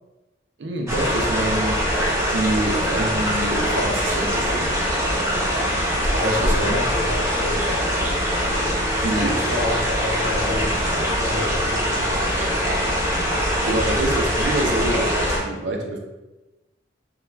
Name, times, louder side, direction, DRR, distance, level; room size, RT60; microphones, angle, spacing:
voice 1, 0.6-4.7 6.2-6.8 9.0-9.4 13.6-16.0, right 1 dB, 65° right, 2 dB, 0.4 m, -26 dB
sound 1, 0.9-15.4, equal, 15° right, 0.5 m, -22 dB
voice 2, 6.1-8.2 8.5-8.8 9.2-10.7 11.2-12.9, left 2 dB, 70° left, -3 dB, 0.7 m, -31 dB
2.2 x 2.2 x 3.1 m, 1.1 s
head